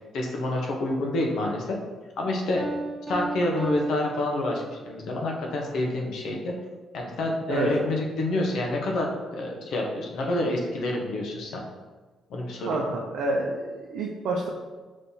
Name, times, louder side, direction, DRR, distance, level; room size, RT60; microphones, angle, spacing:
voice 1, 0.1-1.7 2.2-2.6 3.1-6.5 6.9-11.6 12.3-12.7, left 2 dB, 75° left, 0 dB, 0.8 m, -28 dB
Piano, 2.6-5.0, right 2 dB, 20° right, 1.2 m, -35 dB
voice 2, 7.5-7.9 12.7-14.5, right 2 dB, 80° right, -2 dB, 0.5 m, -28 dB
5.3 x 3.2 x 2.8 m, 1.3 s
cardioid pair, 90°, 0 cm